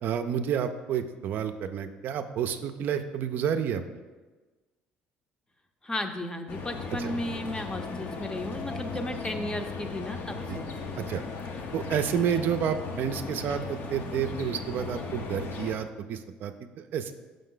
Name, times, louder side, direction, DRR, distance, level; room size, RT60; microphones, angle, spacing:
voice 1, 0.0-3.8 7.0-7.1 8.9-9.0 10.5-10.6 11.0-11.2 11.7-17.1, right 8 dB, 60° right, 8 dB, 0.4 m, -30 dB
voice 2, 5.8-10.7, left 1 dB, 20° left, 7 dB, 0.6 m, -34 dB
sound 1, 6.5-15.8, left 4 dB, 60° left, 0.7 m, -37 dB
5.4 x 5.1 x 3.8 m, 1.3 s
supercardioid pair, 70°, 4 cm